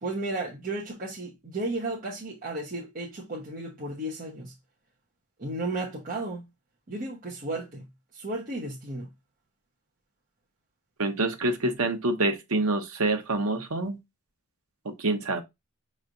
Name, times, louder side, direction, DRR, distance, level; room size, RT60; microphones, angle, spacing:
voice 1, 0.0-4.5 5.4-6.4 6.9-7.9 8.1-9.1, right 2 dB, 40° right, 1.0 m, -34 dB
voice 2, 11.0-14.0 15.0-15.4, right 2 dB, 80° right, 1.0 m, -26 dB
5.7 x 3.2 x 2.5 m
head